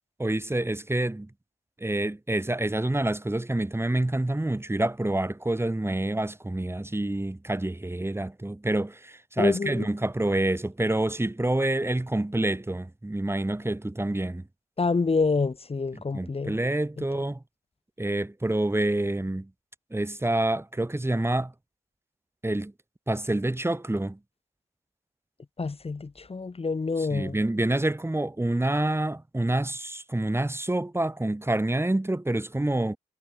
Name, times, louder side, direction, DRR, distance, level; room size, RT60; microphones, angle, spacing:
voice 1, 0.2-1.3 1.8-14.4 15.9-17.4 18.0-19.5 19.9-21.5 22.4-22.7 23.1-24.2 27.0-33.0, right 1 dB, 15° right, 6.1 m, -27 dB
voice 2, 9.4-9.9 14.8-16.6 25.6-27.4, left 4 dB, 40° left, 5.7 m, -27 dB
hypercardioid pair, 45°, 16 cm